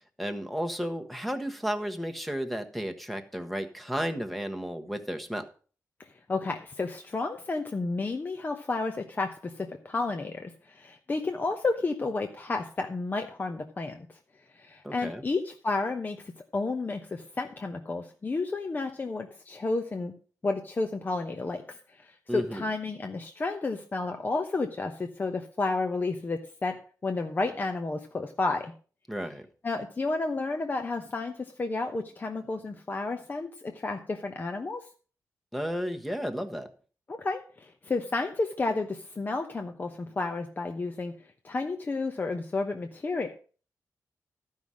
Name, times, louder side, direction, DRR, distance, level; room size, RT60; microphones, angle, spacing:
voice 1, 0.0-5.4 14.8-15.2 22.3-22.6 29.1-29.5 35.5-36.7, equal, ahead, 7 dB, 1.3 m, -33 dB
voice 2, 6.0-14.2 14.5-20.1 20.4-26.8 27.0-28.7 29.6-34.8 37.1-41.2 41.4-43.3, left 3 dB, 30° left, 5 dB, 1.0 m, -31 dB
12.5 x 5.7 x 6.3 m, 0.40 s
cardioid pair, 105°, 6 cm